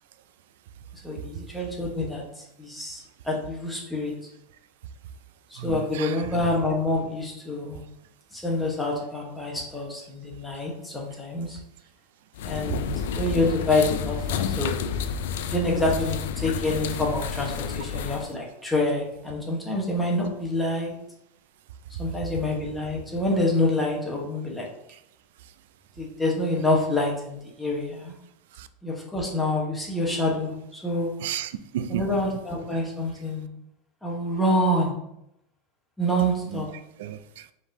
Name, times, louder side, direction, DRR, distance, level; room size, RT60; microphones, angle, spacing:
voice 1, 1.0-2.2 2.6-4.1 5.5-7.8 8.3-11.6 12.4-14.8 15.4-20.9 22.0-24.7 26.0-28.1 28.8-31.1 31.9-33.5 34.0-34.9 36.0-36.7, left 1 dB, 5° left, 1.1 m, -27 dB
voice 2, 5.6-6.2 28.6-28.7 31.2-32.1 36.5-36.6 37.0-37.5, right 10 dB, 75° right, 0.3 m, -33 dB
sound 1, 12.4-18.3, left 7 dB, 80° left, 0.3 m, -30 dB
4.8 x 3.6 x 2.7 m
supercardioid pair, 145°, 0 cm